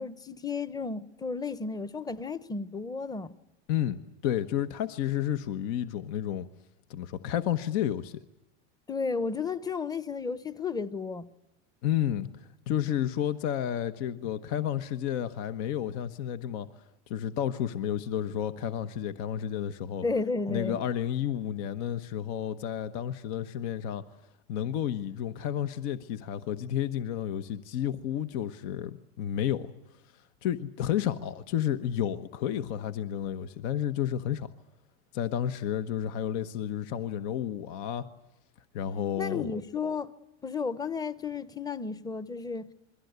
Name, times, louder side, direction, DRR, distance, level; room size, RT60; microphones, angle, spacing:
voice 1, 0.0-3.3 8.9-11.3 20.0-20.8 39.2-40.1 40.4-42.7, left 4 dB, 10° left, 0.9 m, -33 dB
voice 2, 3.7-6.5 6.9-8.2 11.8-16.7 17.1-20.0 20.5-24.0 24.5-29.7 30.1-34.5 35.1-38.0 38.7-39.5, left 10 dB, 65° left, 1.3 m, -31 dB
27.5 x 22.0 x 8.2 m
supercardioid pair, 130°, 36 cm